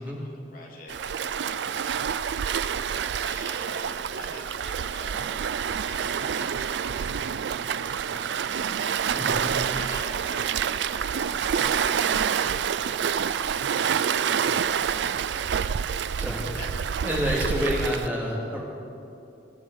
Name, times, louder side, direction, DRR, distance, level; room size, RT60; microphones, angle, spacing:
voice 1, 0.0-2.1 3.2-5.4 5.7-6.5 7.6-7.7 8.0-8.9 9.7-11.1 11.5-12.6 15.6-15.8 16.5-16.7, left 2 dB, 45° left, -1 dB, 2.4 m, -46 dB
Waves surf, 0.9-18.1, right 7 dB, 75° right, 0.4 m, -27 dB
voice 2, 9.1-9.5 16.2-16.5 17.0-18.6, equal, 10° right, -3 dB, 2.1 m, -28 dB
23.5 x 11.0 x 4.7 m, 2.7 s
head